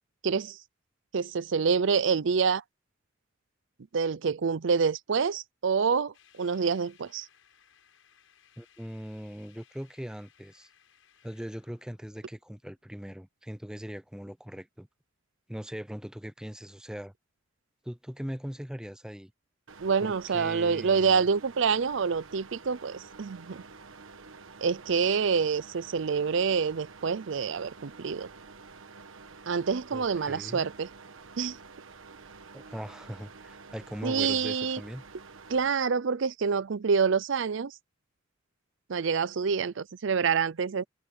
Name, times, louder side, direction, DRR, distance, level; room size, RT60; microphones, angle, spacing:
voice 1, 0.2-0.6 1.1-2.6 3.9-7.3 19.8-23.6 24.6-28.3 29.5-30.9 31.4-31.6 34.0-34.8 35.5-37.8 38.9-40.8, right 5 dB, 65° right, 0.5 m, -27 dB
sound 1, 6.1-12.8, left 9 dB, 85° left, 7.0 m, -63 dB
voice 2, 8.6-10.7 11.2-14.9 15.5-17.1 17.8-19.3 20.0-21.2 29.9-30.6 32.5-35.0, equal, 5° right, 0.6 m, -40 dB
sound 2, 19.7-35.7, right 4 dB, 80° right, 1.3 m, -49 dB
open air
head